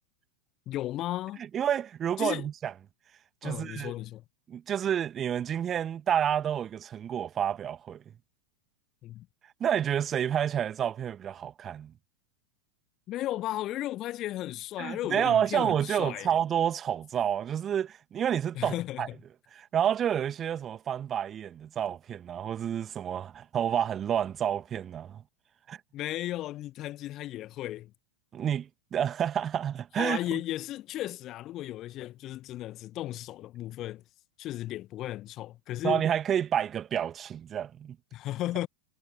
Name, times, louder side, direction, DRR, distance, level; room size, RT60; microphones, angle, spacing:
voice 1, 0.7-1.4 2.2-2.5 3.4-4.2 9.0-9.3 13.1-16.4 18.5-19.1 25.9-27.9 30.0-34.0 34.4-36.0 38.1-38.7, left 14 dB, 35° left, 1.4 m, -35 dB
voice 2, 1.5-2.7 3.4-3.9 4.5-8.0 9.6-11.9 14.8-19.1 19.5-25.2 25.7-25.8 28.3-30.2 35.8-37.9, right 9 dB, 25° right, 1.6 m, -29 dB
figure-of-eight pair, 90°, 0 cm